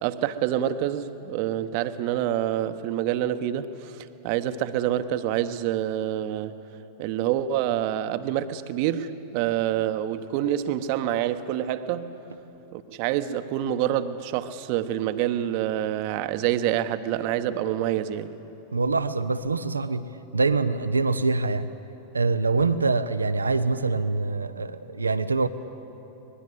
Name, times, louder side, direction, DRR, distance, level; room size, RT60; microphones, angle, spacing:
voice 1, 0.0-6.5 7.0-12.1 12.7-18.3, right 11 dB, 45° right, 11 dB, 1.1 m, -27 dB
voice 2, 18.7-20.0 20.3-21.7 22.1-25.5, right 3 dB, 75° right, 12 dB, 0.7 m, -24 dB
24.5 x 21.0 x 8.0 m, 2.9 s
figure-of-eight pair, 90°, 0 cm